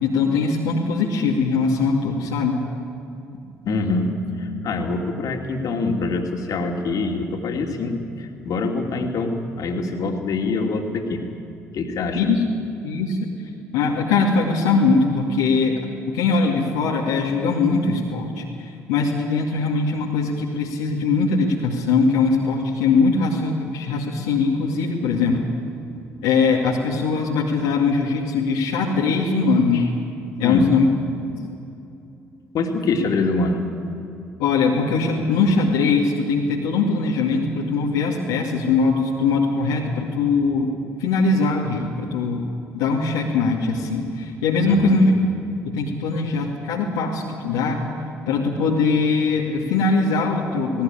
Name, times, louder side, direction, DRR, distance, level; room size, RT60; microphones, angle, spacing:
voice 1, 0.0-2.6 12.1-12.4 12.8-13.2 13.7-15.7 16.1-25.4 26.2-29.9 30.4-30.9 34.4-40.7 41.0-42.4 42.7-45.1 45.6-47.8 48.3-50.8, left 4 dB, 75° left, -3 dB, 2.1 m, -21 dB
voice 2, 3.6-4.1 4.4-11.2 11.7-12.2 30.4-30.7 32.5-33.6 44.6-45.0, left 3 dB, 55° left, 3 dB, 2.6 m, -24 dB
18.0 x 18.0 x 10.0 m, 2.7 s
hypercardioid pair, 50°, 7 cm